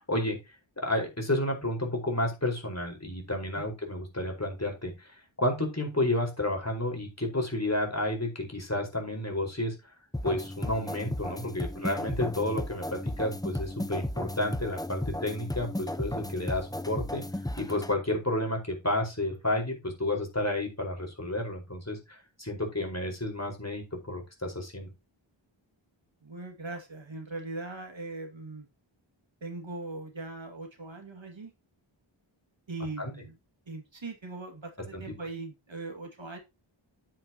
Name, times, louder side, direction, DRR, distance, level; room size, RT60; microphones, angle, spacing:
voice 1, 0.8-5.1 5.4-9.7 10.2-17.2 17.6-24.9 33.0-33.1 34.9-35.0, left 1 dB, 35° left, 4.7 m, -31 dB
sound 1, 10.1-17.9, left 1 dB, 10° left, 0.8 m, -35 dB
voice 2, 26.2-28.7 29.4-31.5 32.7-33.4 33.7-36.4, right 3 dB, 70° right, 2.3 m, -40 dB
9.4 x 8.8 x 2.9 m
wide cardioid pair, 45°, 47 cm